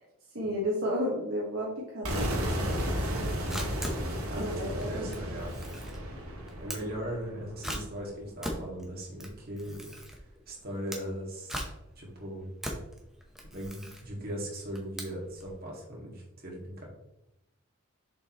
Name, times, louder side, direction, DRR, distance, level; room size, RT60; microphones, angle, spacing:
voice 1, 0.3-2.4 4.3-5.3, equal, 60° right, -5 dB, 1.4 m, -32 dB
sound 1, 2.0-7.9, equal, 75° right, 1.9 m, -34 dB
Camera, 3.5-15.5, equal, ahead, 0.8 m, -41 dB
voice 2, 4.3-5.7 6.6-9.9 10.5-11.6 12.0-12.5 13.5-16.8, equal, 40° right, -2 dB, 2.0 m, -39 dB
7.1 x 5.3 x 3.0 m, 0.90 s
head